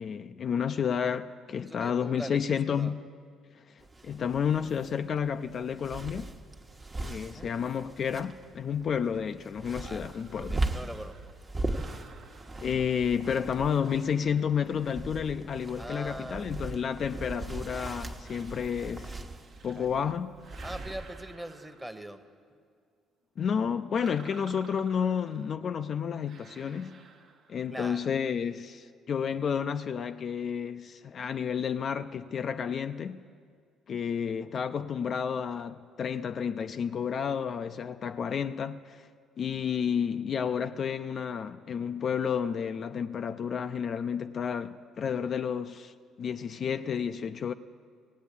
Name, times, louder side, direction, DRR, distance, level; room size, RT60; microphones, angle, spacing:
voice 1, 0.0-3.0 4.0-6.3 7.0-10.6 12.6-19.2 19.6-20.3 23.4-27.0 27.5-33.2 33.9-39.1 39.4-47.5, left 7 dB, 50° left, 0.4 m, -31 dB
voice 2, 1.6-2.9 7.3-7.5 9.8-10.0 10.3-11.3 15.8-16.5 19.7-20.1 20.6-22.2 27.7-28.1, right 1 dB, 10° right, 1.1 m, -42 dB
sound 1, 3.8-21.3, right 2 dB, 30° right, 1.1 m, -39 dB
sound 2, 10.0-13.3 13.8-15.3 15.9-17.5 18.2-20.0 20.3-22.3 23.9-25.5 26.2-27.8, right 5 dB, 65° right, 1.1 m, -54 dB
17.0 x 8.2 x 8.4 m
hypercardioid pair, 60°, 0 cm